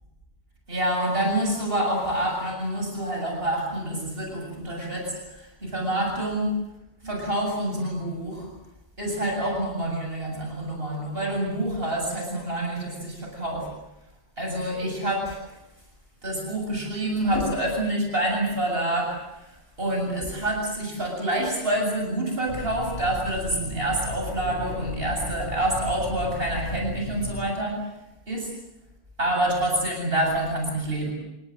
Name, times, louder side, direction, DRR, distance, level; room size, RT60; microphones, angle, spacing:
voice 1, 0.7-6.5 7.0-8.5 9.0-13.7 14.4-15.4 16.2-19.5 19.8-27.8 28.3-28.5 29.2-31.1, right 1 dB, 70° right, 1 dB, 8.0 m, -27 dB
sound 1, 22.5-27.5, left 2 dB, 75° left, 2.4 m, -35 dB
30.0 x 19.5 x 7.9 m, 0.91 s
omnidirectional pair, 1.1 m